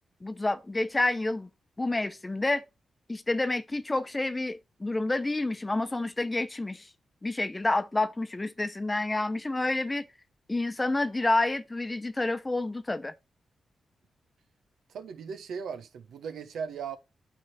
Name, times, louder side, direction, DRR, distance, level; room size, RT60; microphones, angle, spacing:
voice 1, 0.2-1.5 1.8-2.6 3.1-6.9 7.2-10.0 10.5-13.1, left 2 dB, 20° left, 0.9 m, -29 dB
voice 2, 14.9-17.0, right 6 dB, 90° right, 1.2 m, -37 dB
8.8 x 3.6 x 5.6 m
cardioid pair, 85°, 0 cm